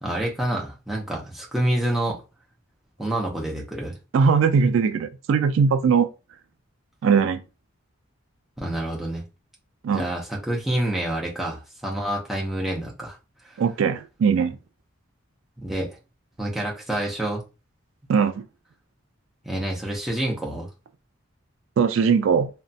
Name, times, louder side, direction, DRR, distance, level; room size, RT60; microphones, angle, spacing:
voice 1, 0.0-2.2 3.0-3.9 8.6-9.2 9.9-13.2 13.4-13.6 15.6-16.0 16.4-17.4 19.4-20.7, right 1 dB, ahead, 0.6 m, -27 dB
voice 2, 4.1-6.1 7.0-7.4 9.8-10.0 13.6-14.6 18.1-18.4 21.8-22.5, right 6 dB, 70° right, 0.3 m, -20 dB
2.9 x 2.2 x 2.7 m
head